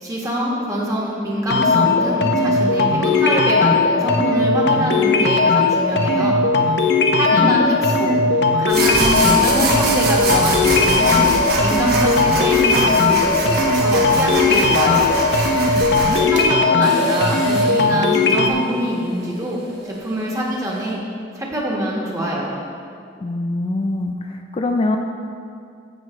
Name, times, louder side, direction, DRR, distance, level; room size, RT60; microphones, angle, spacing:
voice 1, 0.0-6.4 7.1-11.3 11.6-15.1 16.2-19.6 19.8-21.0 21.3-22.6, equal, 20° right, -4 dB, 1.5 m, -24 dB
sound 1, 1.5-18.5, left 3 dB, 65° left, 0.7 m, -17 dB
voice 2, 7.3-7.9 15.7-16.3 23.2-25.0, left 2 dB, 30° left, 3 dB, 0.4 m, -24 dB
sound 2, 8.7-16.2, right 2 dB, 55° right, 1.3 m, -24 dB
sound 3, 15.6-20.9, right 4 dB, 75° right, 1.9 m, -35 dB
15.5 x 6.2 x 3.2 m, 2.4 s
head